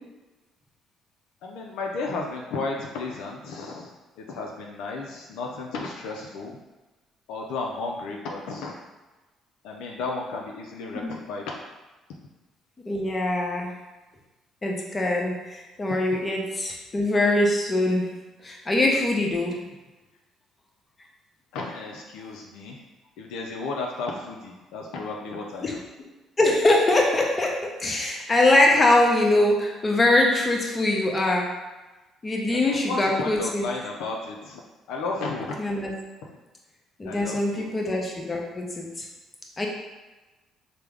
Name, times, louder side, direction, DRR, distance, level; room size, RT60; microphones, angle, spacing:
voice 1, 1.4-3.9 4.2-6.6 7.3-8.7 9.6-11.5 21.5-22.8 23.2-25.8 32.5-34.6 34.9-35.6 36.2-36.3 37.1-37.7, left 3 dB, 80° left, 0 dB, 0.3 m, -33 dB
voice 2, 12.9-13.7 14.6-18.1 18.4-19.6 25.6-25.8 26.4-31.5 32.2-33.7 35.6-35.9 37.0-39.0 39.6-39.7, left 2 dB, 30° left, -1 dB, 0.7 m, -23 dB
3.3 x 2.0 x 3.4 m, 1.1 s
supercardioid pair, 60°, 0 cm